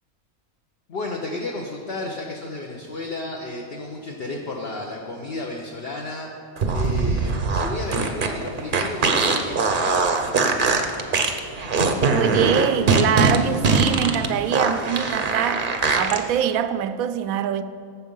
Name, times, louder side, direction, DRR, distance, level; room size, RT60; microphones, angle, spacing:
voice 1, 0.9-6.3 6.7-10.0 10.3-10.8, left 2 dB, 50° left, 1.1 m, -33 dB
sound 1, 6.6-16.2, right 4 dB, 45° right, 0.8 m, -21 dB
voice 2, 12.1-17.6, right 9 dB, 75° right, 1.0 m, -24 dB
13.0 x 7.4 x 5.5 m
omnidirectional pair, 1.5 m